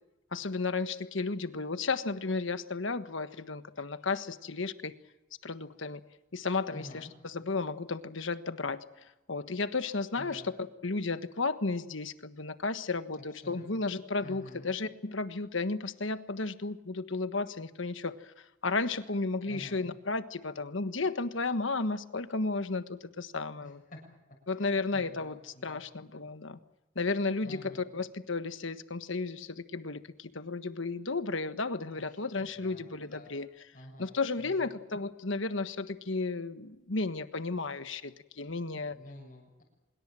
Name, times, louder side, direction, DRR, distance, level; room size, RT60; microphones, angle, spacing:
voice 1, 0.3-4.9 5.4-6.0 6.3-10.4 10.8-23.8 24.5-26.6 26.9-33.5 34.0-39.0, left 3 dB, 70° left, 11 dB, 1.4 m, -33 dB
voice 2, 6.7-7.1 10.2-10.5 13.3-13.7 14.2-14.7 19.5-19.9 23.6-24.1 24.5-25.8 27.4-27.9 31.9-33.4 33.7-34.8 38.9-39.6, left 1 dB, 40° left, 0 dB, 7.1 m, -50 dB
25.5 x 22.0 x 7.6 m, 1.0 s
head